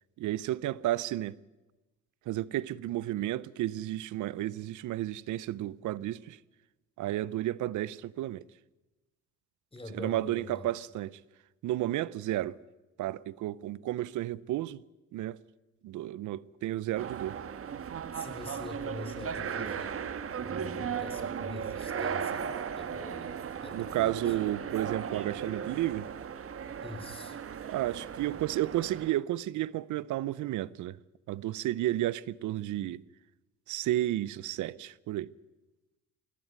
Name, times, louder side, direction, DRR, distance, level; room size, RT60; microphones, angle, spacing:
voice 1, 0.2-1.4 2.3-6.4 7.0-8.4 9.9-11.2 11.6-12.6 13.0-14.8 15.1-15.4 15.8-17.4 23.7-26.1 27.6-31.0 31.3-33.0 33.7-35.3, right 14 dB, 80° right, 0.6 m, -32 dB
voice 2, 9.7-10.7 18.1-20.0 20.4-23.3 23.6-24.4 26.8-27.4, left 2 dB, 20° left, 3.6 m, -44 dB
sound 1, 17.0-29.2, right 7 dB, 50° right, 1.3 m, -37 dB
21.0 x 16.0 x 9.4 m
cardioid pair, 90°, 30 cm